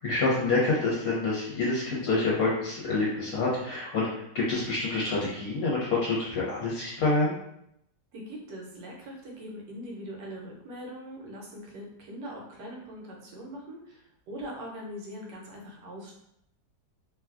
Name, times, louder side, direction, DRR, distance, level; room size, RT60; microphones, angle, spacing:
voice 1, 0.0-7.4, left 3 dB, 65° left, -7 dB, 1.1 m, -27 dB
voice 2, 8.1-16.1, equal, 70° right, -2 dB, 1.2 m, -41 dB
3.0 x 2.3 x 2.3 m, 0.76 s
omnidirectional pair, 1.9 m